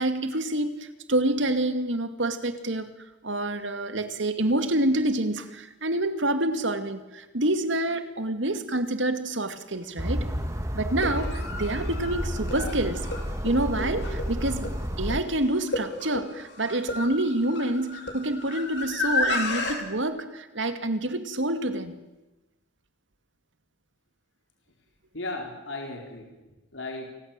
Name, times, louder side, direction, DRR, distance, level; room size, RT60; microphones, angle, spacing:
voice 1, 0.0-2.9 3.2-10.3 10.7-13.1 13.4-14.7 15.0-22.0, right 1 dB, 80° right, 9 dB, 2.5 m, -27 dB
sound 1, 9.7-9.8 10.8-19.8, left 3 dB, 65° left, 5.2 m, -32 dB
sound 2, 10.0-15.2, equal, 15° right, 1.8 m, -31 dB
voice 2, 25.1-27.1, left 2 dB, 80° left, 2 dB, 4.3 m, -36 dB
28.0 x 19.0 x 9.1 m, 1.1 s
head